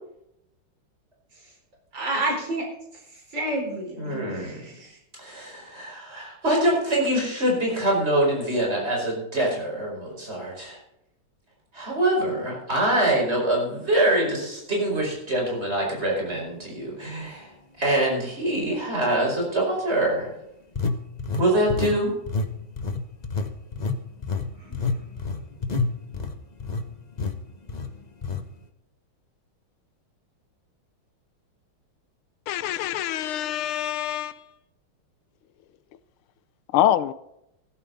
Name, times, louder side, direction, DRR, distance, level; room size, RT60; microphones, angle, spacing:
voice 1, 1.9-2.7 3.1-5.0 24.6-24.8, right 2 dB, 60° right, -1 dB, 4.9 m, -30 dB
voice 2, 4.0-4.6 5.2-10.8 11.7-17.5 17.8-20.3 21.4-22.1, right 1 dB, 30° right, -1 dB, 5.3 m, -24 dB
sound 1, 16.3-16.4 17.0-17.2 20.7-22.0 22.3-22.5 22.8-26.9 27.2-27.4 27.7-27.9 28.2-28.4, left 4 dB, 60° left, 0.4 m, -28 dB
voice 3, 32.5-34.4 36.7-37.1, left 12 dB, 85° left, 16 dB, 1.5 m, -25 dB
15.0 x 13.0 x 4.0 m, 0.80 s
omnidirectional pair, 2.3 m